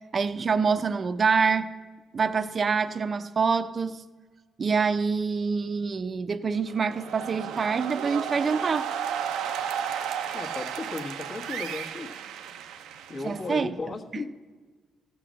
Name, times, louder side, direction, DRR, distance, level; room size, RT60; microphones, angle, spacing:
voice 1, 0.1-1.7 2.1-4.0 4.6-8.9 13.2-13.7, right 5 dB, 40° right, 12 dB, 0.6 m, -26 dB
sound 1, 6.7-13.6, right 8 dB, 90° right, 0.6 m, -33 dB
voice 2, 10.3-12.1 13.1-14.3, left 3 dB, 50° left, 2 dB, 1.3 m, -35 dB
15.0 x 6.8 x 6.3 m, 1.4 s
cardioid pair, 90°, 0 cm